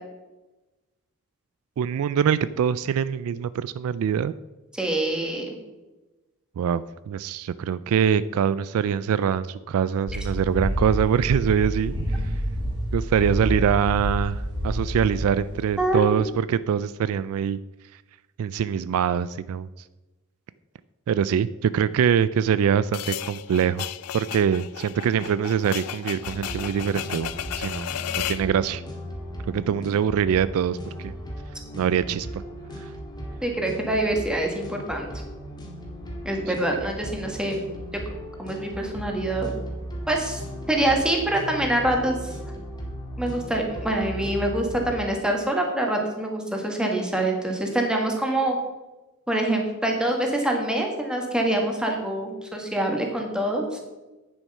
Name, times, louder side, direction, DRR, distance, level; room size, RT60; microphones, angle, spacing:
voice 1, 1.8-4.3 6.6-11.9 12.9-17.6 18.4-19.7 21.1-23.8 24.1-28.8 29.5-31.1 31.7-32.4 32.8-32.9, right 8 dB, 65° right, 17 dB, 0.3 m, -24 dB
voice 2, 4.7-5.5 15.8-16.0 33.4-35.1 36.2-37.6 38.4-39.5 40.1-40.4 40.7-42.3 43.2-48.6 49.3-53.8, right 1 dB, 5° right, 1 dB, 1.6 m, -25 dB
sound 1, 10.1-16.2, equal, 20° right, 2.7 m, -28 dB
sound 2, 22.9-28.5, left 11 dB, 80° left, 0.4 m, -34 dB
sound 3, 26.1-45.0, equal, 20° left, 1.9 m, -37 dB
9.2 x 7.1 x 5.4 m, 1.1 s
head